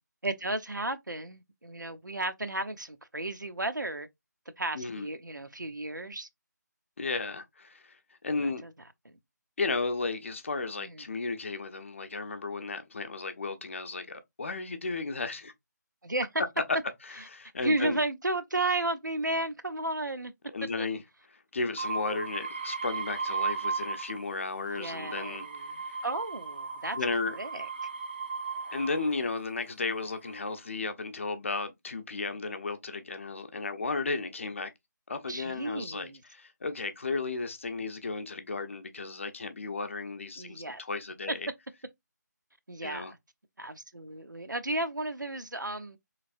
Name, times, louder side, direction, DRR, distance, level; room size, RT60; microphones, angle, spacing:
voice 1, 0.2-4.1 4.6-6.3 8.3-8.7 9.1-9.2 10.8-11.1 16.0-16.3 17.6-20.3 20.8-20.9 24.6-27.0 27.3-27.7 35.3-36.2 40.4-40.8 42.7-43.2 43.6-46.0, right 2 dB, 90° right, 0.6 m, -33 dB
voice 2, 4.7-5.1 7.0-8.0 8.2-8.6 9.6-15.5 17.3-18.0 20.5-21.0 21.5-25.4 25.8-26.0 26.9-27.3 28.7-34.7 35.1-41.5 42.8-43.1, left 3 dB, 45° left, 0.6 m, -34 dB
sound 1, 21.8-24.3 24.7-29.2 30.0-30.5, right 5 dB, 30° right, 0.4 m, -36 dB
3.4 x 3.2 x 2.4 m
figure-of-eight pair, 155°, 10 cm